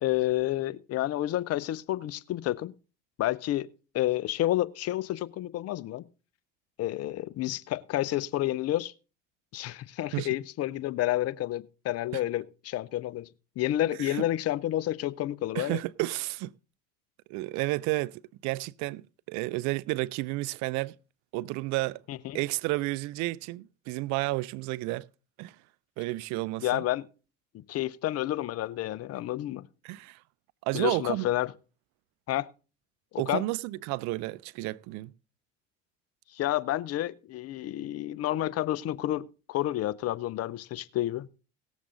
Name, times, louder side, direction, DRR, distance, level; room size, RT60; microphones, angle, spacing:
voice 1, 0.0-2.7 3.2-3.7 3.9-6.1 6.8-8.9 9.5-13.3 13.6-15.8 22.1-22.4 26.6-27.1 27.5-29.6 30.7-31.5 32.3-32.5 33.1-33.4 36.3-41.3, left 14 dB, 55° left, 0.7 m, -30 dB
voice 2, 15.5-16.5 17.3-20.9 21.3-22.0 22.3-25.1 25.4-25.6 26.0-26.8 29.8-30.2 30.6-31.3 33.2-35.1, right 20 dB, 70° right, 0.5 m, -31 dB
18.0 x 7.3 x 3.8 m
hypercardioid pair, 75°, 29 cm